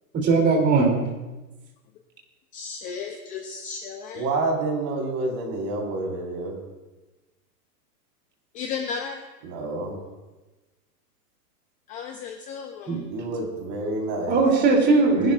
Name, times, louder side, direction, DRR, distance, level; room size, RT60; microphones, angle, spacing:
voice 1, 0.1-0.9 12.9-13.0 14.3-15.3, right 3 dB, 20° right, -1 dB, 3.0 m, -19 dB
voice 2, 2.5-4.3 8.5-9.2 11.9-13.1, left 6 dB, 15° left, 4 dB, 0.4 m, -34 dB
voice 3, 4.1-6.6 9.4-10.0 13.1-14.4, right 2 dB, 45° right, 0 dB, 4.5 m, -28 dB
23.0 x 11.5 x 2.5 m, 1.1 s
hypercardioid pair, 140°, 48 cm